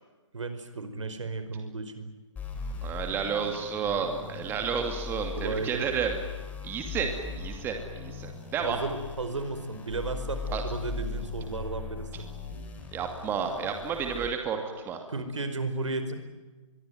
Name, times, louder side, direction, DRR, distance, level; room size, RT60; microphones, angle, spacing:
voice 1, 0.3-2.1 5.3-5.8 8.6-12.1 15.1-16.2, right 3 dB, 70° right, 9 dB, 5.0 m, -34 dB
sound 1, 2.4-14.3, left 4 dB, 10° left, 4.2 m, -39 dB
voice 2, 2.8-6.2 6.6-7.1 7.4-8.8 10.5-10.6 12.9-14.6 14.8-15.0, right 6 dB, 15° right, 4 dB, 2.5 m, -31 dB
26.5 x 23.0 x 9.4 m, 1.2 s
figure-of-eight pair, 145°, 16 cm